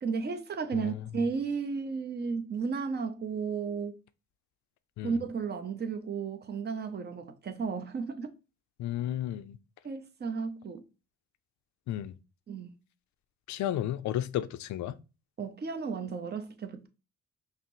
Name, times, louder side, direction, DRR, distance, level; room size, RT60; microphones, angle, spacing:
voice 1, 0.0-3.9 5.0-8.3 9.8-10.8 12.5-12.8 15.4-16.9, right 5 dB, 35° right, 0.7 m, -33 dB
voice 2, 0.7-1.0 5.0-5.1 8.8-9.6 11.9-12.1 13.5-15.0, left 12 dB, 70° left, 0.4 m, -33 dB
5.6 x 2.0 x 3.0 m
cardioid pair, 90°, 30 cm